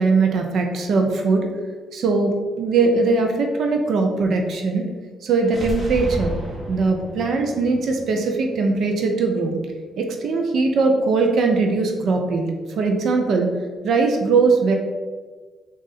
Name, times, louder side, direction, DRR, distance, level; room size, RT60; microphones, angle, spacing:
voice 1, 0.0-1.5 1.9-4.9 5.2-6.3 6.7-9.6 10.0-13.5 13.8-14.7, right 4 dB, 65° right, 3 dB, 0.6 m, -20 dB
sound 1, 5.4-9.3, equal, 30° right, 1.2 m, -32 dB
3.7 x 2.5 x 4.1 m, 1.4 s
cardioid pair, 90°, 0 cm